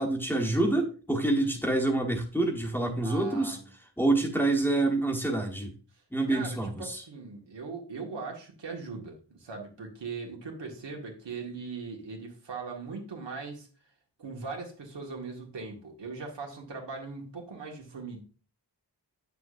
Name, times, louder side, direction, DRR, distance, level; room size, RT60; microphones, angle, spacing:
voice 1, 0.0-3.6 4.0-5.7 6.1-7.0, right 2 dB, 5° left, 0 dB, 1.2 m, -27 dB
voice 2, 3.0-3.7 6.3-13.7 14.2-18.2, right 4 dB, 85° right, 0 dB, 1.9 m, -40 dB
8.4 x 6.7 x 2.6 m, 0.37 s
wide cardioid pair, 105°, 42 cm